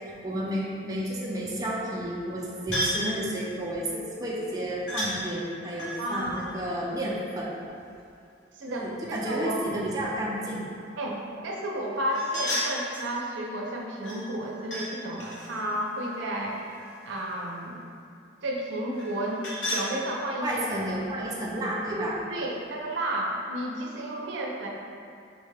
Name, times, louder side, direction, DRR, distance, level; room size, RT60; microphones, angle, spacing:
voice 1, 0.2-7.5 8.7-10.6 20.4-22.2, right 1 dB, 20° right, -5 dB, 0.4 m, -31 dB
sound 1, 2.7-3.1 4.9-5.1 5.8-7.6 12.1-13.1 14.0-14.9 15.2-17.1 19.0-19.9, equal, 80° left, 0.8 m, -34 dB
voice 2, 6.0-6.4 8.5-9.6 11.0-16.6 17.1-17.8 18.4-19.4 19.7-20.6 22.3-24.7, right 1 dB, 85° right, -2 dB, 0.5 m, -32 dB
5.4 x 2.2 x 3.2 m, 2.4 s
head